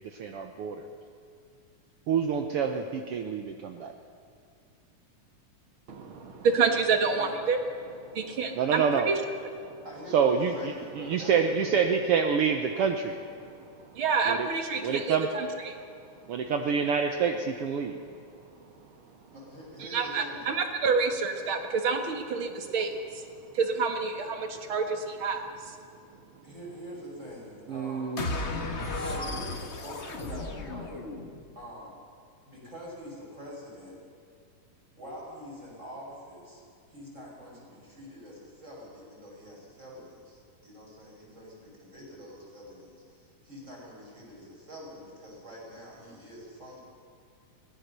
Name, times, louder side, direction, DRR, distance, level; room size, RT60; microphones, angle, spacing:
voice 1, 0.2-0.8 2.1-3.9 8.5-9.1 10.1-10.5 11.0-13.1 14.3-14.5 14.8-15.3 16.3-18.0 27.7-28.3, right 6 dB, 75° right, 5 dB, 1.3 m, -27 dB
voice 2, 5.9-9.2 14.0-15.8 19.9-23.2 23.5-25.7, right 5 dB, 50° right, 5 dB, 1.9 m, -28 dB
voice 3, 6.9-7.5 9.8-12.0 12.6-13.0 19.3-20.6 26.4-28.2 28.9-31.0 31.5-31.9 32.4-34.0 35.0-36.6 36.9-46.8, equal, 20° right, -4 dB, 6.4 m, -45 dB
sound 1, 28.2-31.5, left 2 dB, 55° left, 0.7 m, -34 dB
23.0 x 18.0 x 6.7 m, 2.3 s
omnidirectional pair, 3.8 m